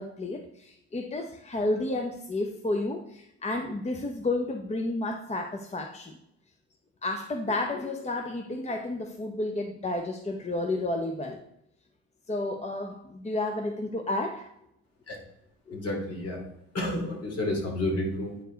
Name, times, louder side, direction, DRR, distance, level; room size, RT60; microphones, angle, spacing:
voice 1, 0.0-6.2 7.0-11.4 12.3-14.5 15.7-15.8 16.4-16.5, left 2 dB, 20° left, 5 dB, 0.7 m, -31 dB
voice 2, 15.7-16.4 16.7-18.4, left 1 dB, 55° left, 0 dB, 2.8 m, -30 dB
9.2 x 4.6 x 4.0 m, 0.80 s
cardioid pair, 90°, 30 cm